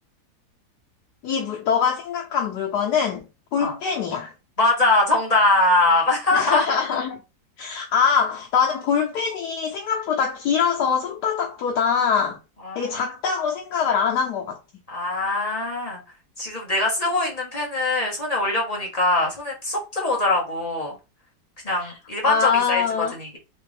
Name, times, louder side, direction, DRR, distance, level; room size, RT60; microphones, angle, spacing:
voice 1, 1.2-3.2 3.5-4.3 6.3-7.2 7.6-12.4 12.7-14.6 21.8-21.9 22.2-23.1, left 6 dB, 80° left, 1.3 m, -23 dB
voice 2, 4.6-6.8 12.6-13.0 14.9-16.0 16.4-20.9 21.6-22.8 23.2-23.4, left 2 dB, 25° left, 1.2 m, -22 dB
4.1 x 3.4 x 3.3 m
omnidirectional pair, 1.7 m